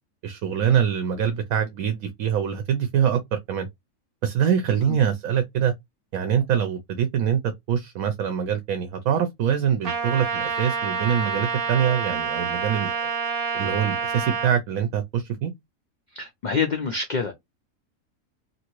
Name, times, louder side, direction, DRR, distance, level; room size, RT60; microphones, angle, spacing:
voice 1, 0.2-3.7 4.2-5.7 6.1-7.4 7.7-13.1 13.5-15.5, right 8 dB, 80° right, 1.0 m, -24 dB
Trumpet, 9.8-14.5, right 5 dB, 50° right, 0.8 m, -27 dB
voice 2, 16.2-17.3, left 5 dB, 70° left, 0.4 m, -26 dB
2.8 x 2.7 x 2.9 m
omnidirectional pair, 1.5 m